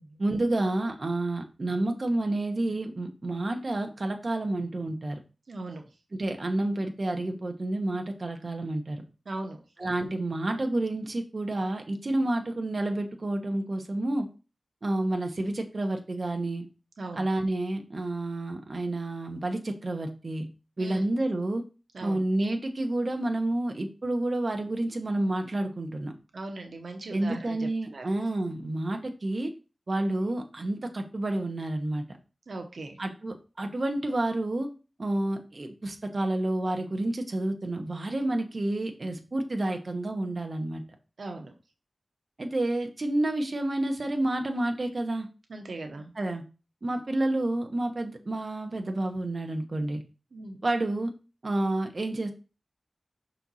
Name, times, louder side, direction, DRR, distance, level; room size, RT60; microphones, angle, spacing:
voice 1, 0.2-5.2 6.1-9.0 9.8-14.3 14.8-16.6 17.1-20.5 20.8-21.6 22.0-26.1 27.1-29.5 29.9-32.0 33.0-34.7 35.0-40.8 42.4-45.3 46.2-46.4 46.8-50.0 50.6-51.1 51.4-52.3, right 1 dB, 55° right, 4 dB, 1.1 m, -29 dB
voice 2, 5.5-5.9 9.3-9.6 17.0-17.3 20.8-21.0 21.9-22.2 26.3-28.0 32.5-33.0 41.2-41.5 45.5-46.1 50.3-50.6, right 2 dB, 90° right, 4 dB, 0.9 m, -39 dB
6.0 x 4.5 x 4.1 m, 0.32 s
wide cardioid pair, 80°, 0 cm